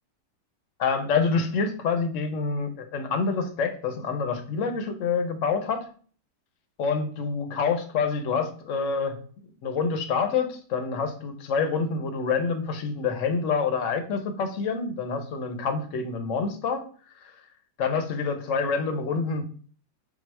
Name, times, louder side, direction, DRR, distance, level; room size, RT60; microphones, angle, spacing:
voice 1, 0.8-5.9 6.8-9.2 9.6-16.9 17.2-17.3 17.8-19.4, left 5 dB, 65° left, 6 dB, 0.8 m, -27 dB
4.6 x 2.1 x 4.4 m, 0.43 s
omnidirectional pair, 1.8 m